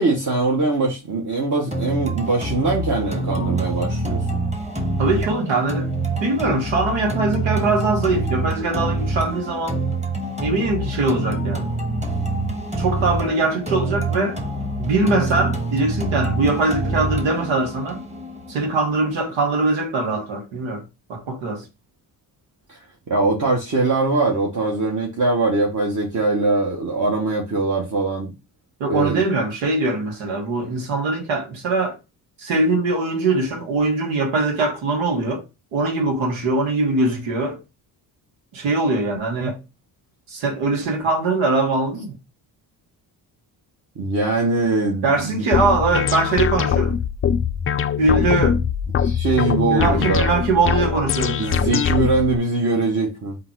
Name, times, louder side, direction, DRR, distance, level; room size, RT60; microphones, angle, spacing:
voice 1, 0.0-4.4 22.7-22.8 23.1-28.3 28.9-29.2 43.9-45.4 49.0-50.3 51.4-53.4, right 3 dB, 40° right, 1.4 m, -22 dB
sound 1, 1.7-19.7, right 2 dB, 15° right, 1.4 m, -26 dB
voice 2, 5.0-5.9 6.2-9.8 10.4-11.7 12.8-14.4 14.8-18.0 18.5-20.8 21.1-21.6 28.8-32.0 32.4-35.4 35.7-37.6 38.5-39.6 40.3-42.2 45.0-47.0 48.0-48.6 49.6-51.6, right 3 dB, 85° right, 1.4 m, -22 dB
sound 2, 45.5-52.4, left 7 dB, 30° left, 0.4 m, -22 dB
3.7 x 2.7 x 4.5 m
supercardioid pair, 60°, 46 cm